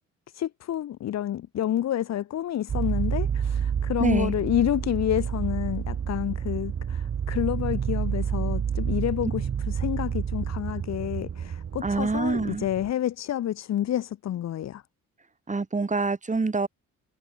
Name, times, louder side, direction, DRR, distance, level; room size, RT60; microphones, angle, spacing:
voice 1, 0.3-14.8, left 11 dB, 60° left, 1.1 m, -29 dB
sound 1, 2.7-12.9, right 8 dB, 50° right, 4.0 m, -29 dB
voice 2, 4.0-4.3 11.8-12.7 15.5-16.7, right 3 dB, 25° right, 4.2 m, -26 dB
cardioid pair, 90°, 30 cm